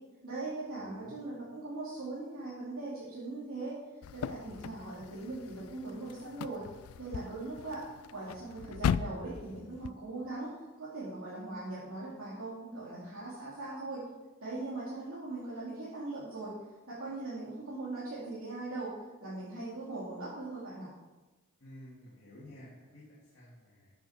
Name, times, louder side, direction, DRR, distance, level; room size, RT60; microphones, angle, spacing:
voice 1, 0.2-3.8 4.1-6.6 7.0-10.5 10.8-14.0 14.4-16.6 16.9-20.9, right 2 dB, 80° right, -9 dB, 2.6 m, -40 dB
voice 2, 0.7-1.2 21.6-23.9, left 1 dB, 55° left, -7 dB, 2.4 m, -52 dB
sound 1, 4.0-9.9, left 7 dB, 80° left, 0.3 m, -38 dB
13.0 x 6.9 x 4.3 m, 1.2 s
head